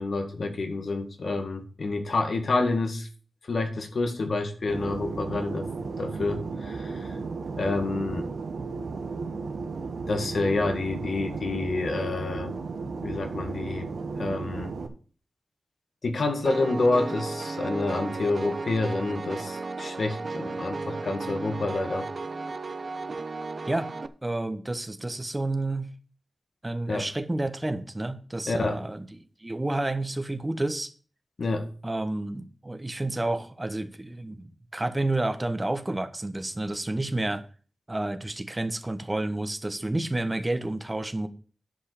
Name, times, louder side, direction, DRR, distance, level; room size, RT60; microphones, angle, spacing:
voice 1, 0.0-3.1 3.5-5.7 6.0-7.1 7.6-8.3 10.1-12.5 13.0-13.9 14.2-14.7 16.0-22.1 26.9-27.1 28.5-28.8 31.4-31.7, left 3 dB, 70° left, 1.8 m, -28 dB
Fixed-wing aircraft airplane, 4.7-14.9, right 4 dB, 90° right, 1.3 m, -34 dB
Piano, 16.4-24.1, right 3 dB, 50° right, 0.8 m, -34 dB
voice 2, 24.2-25.9 26.6-29.1 29.4-30.9 31.8-37.4 37.9-41.3, right 2 dB, 20° right, 1.1 m, -30 dB
10.5 x 5.4 x 6.6 m
wide cardioid pair, 80°, 0 cm